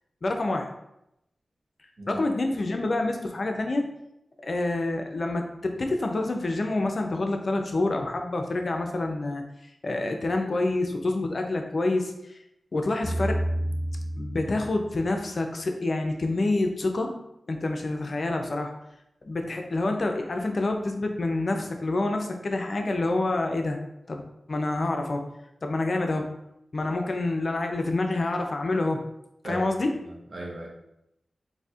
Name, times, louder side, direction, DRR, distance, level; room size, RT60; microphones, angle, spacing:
voice 1, 0.2-0.7 2.1-3.8 4.4-9.4 9.8-12.4 12.7-13.4 14.2-17.1 17.5-18.7 19.2-23.8 24.1-24.2 24.5-25.2 25.6-26.3 26.7-29.0 29.4-29.9, left 2 dB, 60° left, 4 dB, 0.4 m, -27 dB
sound 1, 13.0-15.4, right 1 dB, 20° right, 0.6 m, -30 dB
voice 2, 30.0-30.7, right 1 dB, 60° right, -3 dB, 0.9 m, -36 dB
4.1 x 2.7 x 2.4 m, 0.84 s
cardioid pair, 60°, 0 cm